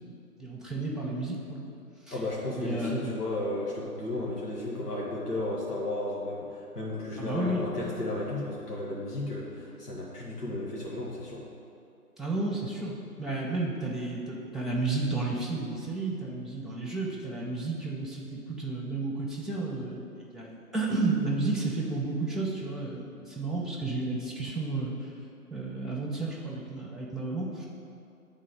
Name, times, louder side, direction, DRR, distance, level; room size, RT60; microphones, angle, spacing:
voice 1, 0.4-1.6 2.1-2.2 2.5-3.1 7.2-7.6 12.2-25.1 25.5-27.6, right 3 dB, ahead, -5 dB, 0.5 m, -32 dB
voice 2, 2.1-11.4, left 1 dB, 80° left, -5 dB, 1.5 m, -34 dB
7.8 x 3.7 x 5.0 m, 2.6 s
figure-of-eight pair, 175°, 47 cm